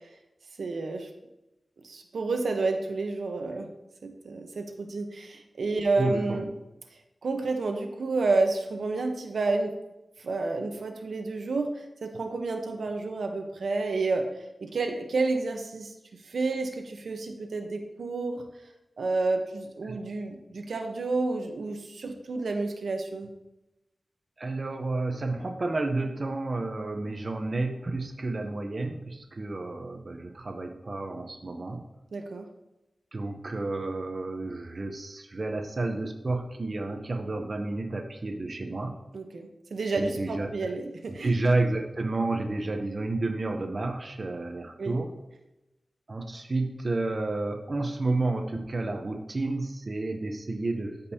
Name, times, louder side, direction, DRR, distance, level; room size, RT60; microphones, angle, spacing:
voice 1, 0.6-1.1 1.8-3.7 4.0-6.4 7.2-9.8 10.2-14.3 14.6-15.9 16.3-18.4 19.0-23.3 32.1-32.5 39.1-41.3 44.8-45.0, right 3 dB, 80° right, 4 dB, 0.9 m, -30 dB
voice 2, 6.0-6.4 19.8-20.0 24.4-31.8 33.1-38.9 39.9-40.7 41.1-45.1 46.1-51.1, right 2 dB, 40° right, 3 dB, 0.7 m, -31 dB
13.0 x 5.3 x 2.8 m, 0.95 s
wide cardioid pair, 105°, 0 cm